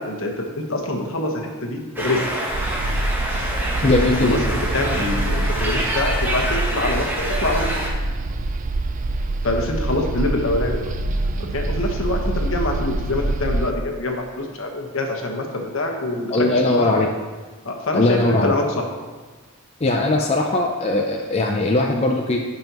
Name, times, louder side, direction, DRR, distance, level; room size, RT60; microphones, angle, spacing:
voice 1, 0.0-2.2 4.2-7.1 7.4-7.7 9.4-10.9 11.5-16.8 17.6-18.8, left 2 dB, 60° left, 2 dB, 1.3 m, -25 dB
sound 1, 2.0-7.9, equal, 10° right, 1.1 m, -27 dB
sound 2, 2.5-13.7, right 2 dB, 35° right, 0.4 m, -25 dB
voice 2, 3.8-4.3 16.3-17.1 17.9-18.5 19.8-22.4, left 2 dB, 30° left, 0 dB, 0.5 m, -19 dB
15.5 x 5.4 x 3.0 m, 1.3 s
head